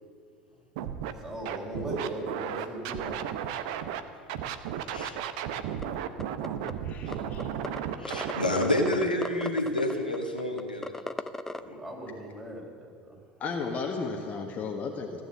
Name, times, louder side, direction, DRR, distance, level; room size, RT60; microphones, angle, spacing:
Scratching (performance technique), 0.7-1.1 1.4-4.0 4.3-8.5, right 9 dB, 55° right, 0.8 m, -34 dB
voice 1, 1.2-3.2 11.5-13.2, right 1 dB, 15° right, -2 dB, 4.4 m, -38 dB
voice 2, 4.9-5.2 7.1-7.2 8.0-10.9, left 1 dB, 85° left, 2 dB, 1.4 m, -29 dB
sound 1, 5.8-5.9 6.2-6.7 7.1-7.2 7.4-7.8 8.0-11.6, left 2 dB, 10° left, 0.6 m, -35 dB
voice 3, 6.8-7.5 13.4-15.2, left 4 dB, 35° left, 1 dB, 1.4 m, -34 dB
15.5 x 9.3 x 7.6 m, 2.2 s
figure-of-eight pair, 70°, 5 cm